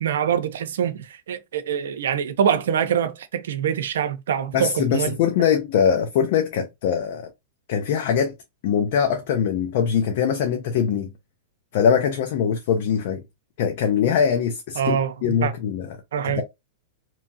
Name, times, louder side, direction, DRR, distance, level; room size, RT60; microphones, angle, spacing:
voice 1, 0.0-5.2 14.7-15.5 16.1-16.4, right 8 dB, 80° right, 0.6 m, -24 dB
voice 2, 4.5-7.2 7.7-8.3 8.6-11.1 11.7-13.2 13.6-15.9 16.3-16.4, left 7 dB, 55° left, 0.6 m, -22 dB
2.8 x 2.3 x 2.6 m
hypercardioid pair, 140°, 0 cm